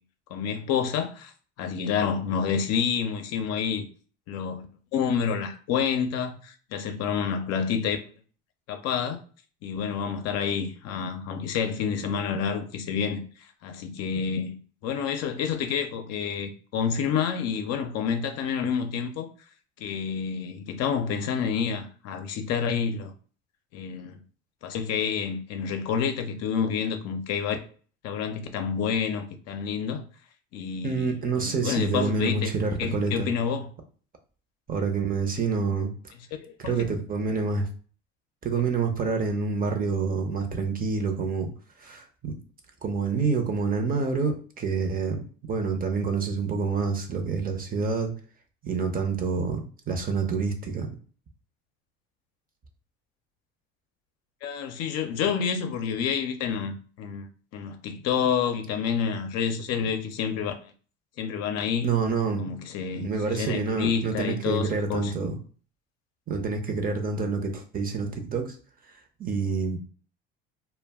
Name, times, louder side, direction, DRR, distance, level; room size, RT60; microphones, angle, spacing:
voice 1, 0.3-1.3 1.6-3.9 4.3-4.6 4.9-8.0 8.7-9.2 9.6-13.2 13.6-14.6 14.8-19.3 19.8-23.1 23.7-24.2 24.6-27.6 28.0-30.0 30.5-32.5 32.8-33.7 36.4-36.8 54.4-57.3 57.5-60.7 61.2-61.9 62.4-65.1, left 7 dB, 60° left, 0.6 m, -28 dB
voice 2, 30.8-33.3 34.7-35.9 36.6-37.7 38.4-41.5 41.8-42.3 42.8-48.1 48.6-49.6 49.9-50.9 61.8-62.6 62.9-65.3 66.3-68.5 69.2-69.8, right 4 dB, 30° right, 0.7 m, -27 dB
2.2 x 2.1 x 3.4 m
supercardioid pair, 90°, 29 cm